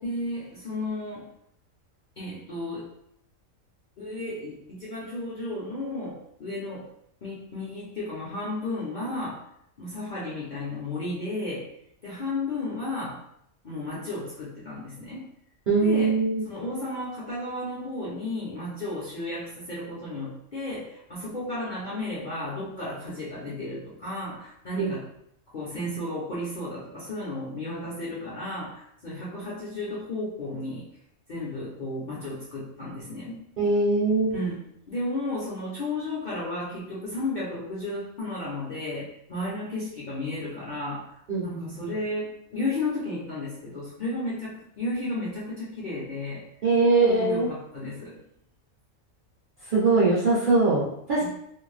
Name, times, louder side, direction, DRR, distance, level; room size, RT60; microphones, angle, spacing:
voice 1, 0.0-1.3 2.2-2.8 4.0-6.9 7.2-9.4 9.8-11.7 12.0-13.2 13.6-15.3 15.8-16.1 16.4-25.1 25.5-30.9 31.3-33.4 34.3-46.4 47.0-48.2 51.2-51.3, left 2 dB, 50° left, -8 dB, 0.6 m, -33 dB
voice 2, 15.7-16.4 24.8-24.9 33.6-34.3 41.3-41.9 46.6-47.5 49.7-51.3, right 3 dB, 55° right, -7 dB, 0.6 m, -22 dB
2.5 x 2.2 x 3.1 m, 0.73 s
omnidirectional pair, 1.5 m